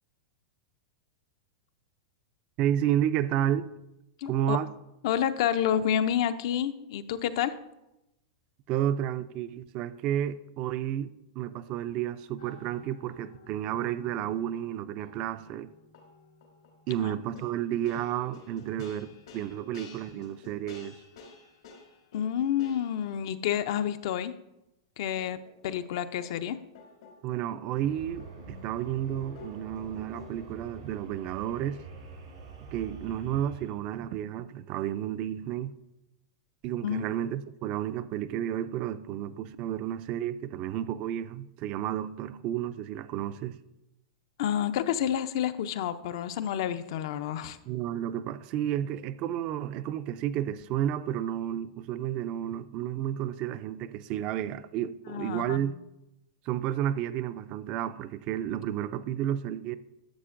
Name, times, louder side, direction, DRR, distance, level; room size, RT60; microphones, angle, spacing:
voice 1, 2.6-3.7 4.3-4.7 8.7-11.1 11.4-15.7 16.9-21.0 27.2-31.8 32.7-35.7 36.6-43.6 47.7-55.8 56.5-59.8, right 11 dB, 40° right, 0.3 m, -31 dB
voice 2, 4.2-4.6 5.0-7.5 16.9-17.1 22.1-24.3 25.0-26.6 28.5-28.6 36.8-37.0 44.4-47.6 55.1-55.8, left 9 dB, 60° left, 0.4 m, -29 dB
sound 1, 12.4-23.1 25.2-30.5, left 4 dB, 85° left, 2.2 m, -52 dB
sound 2, 27.8-33.7, right 5 dB, 85° right, 2.3 m, -46 dB
11.0 x 6.8 x 2.5 m
supercardioid pair, 145°, 3 cm